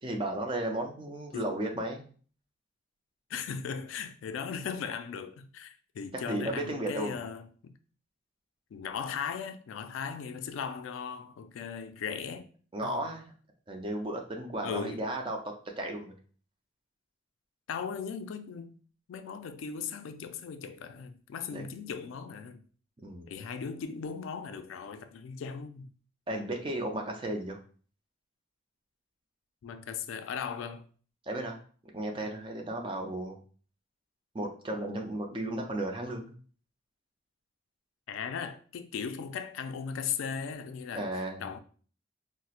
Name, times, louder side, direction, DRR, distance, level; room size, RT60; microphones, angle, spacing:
voice 1, 0.0-2.1 6.1-7.2 12.7-13.3 13.7-16.1 21.5-21.6 23.0-23.3 26.3-27.6 31.3-31.6 31.9-33.4 34.3-36.3 40.9-41.5, right 1 dB, 25° right, 0.4 m, -34 dB
voice 2, 3.3-7.7 8.7-12.5 12.8-13.1 14.6-15.1 17.7-18.8 19.1-22.6 23.3-25.9 29.6-30.9 38.1-41.1 41.4-41.6, left 6 dB, 85° left, 0.3 m, -38 dB
4.1 x 2.1 x 2.4 m
head